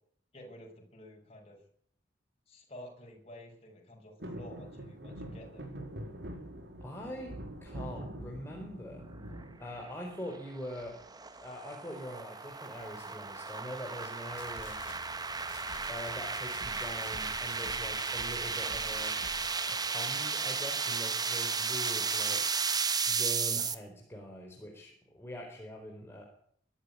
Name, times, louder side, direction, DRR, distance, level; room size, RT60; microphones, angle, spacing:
voice 1, 0.3-1.6 2.5-5.7, left 1 dB, 35° left, 0 dB, 6.5 m, -51 dB
sound 1, 4.2-10.4 10.8-11.4 12.7-13.1 13.4-13.5 13.7-14.0 14.9-15.8 16.3-16.4, right 1 dB, 65° right, 4.8 m, -45 dB
voice 2, 6.8-9.0 9.6-11.0 11.4-14.8 15.9-19.2 19.7-22.4 23.1-26.2, equal, 15° left, 0 dB, 4.3 m, -43 dB
sound 2, 9.8-23.7, right 5 dB, 20° right, 1.5 m, -34 dB
sound 3, 14.3-19.8, left 3 dB, 85° left, 2.3 m, -49 dB
23.5 x 13.0 x 9.9 m, 0.63 s
head